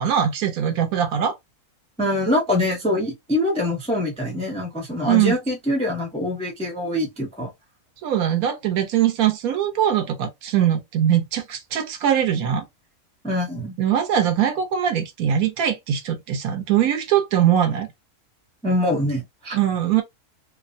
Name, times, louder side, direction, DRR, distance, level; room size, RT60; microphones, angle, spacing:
voice 1, 0.0-1.3 5.1-5.4 8.0-12.6 13.8-17.9 19.5-20.0, right 10 dB, 70° right, 1.1 m, -21 dB
voice 2, 2.0-7.5 13.2-13.8 18.6-19.6, left 1 dB, 10° left, 0.4 m, -24 dB
2.7 x 2.1 x 2.5 m
omnidirectional pair, 1.6 m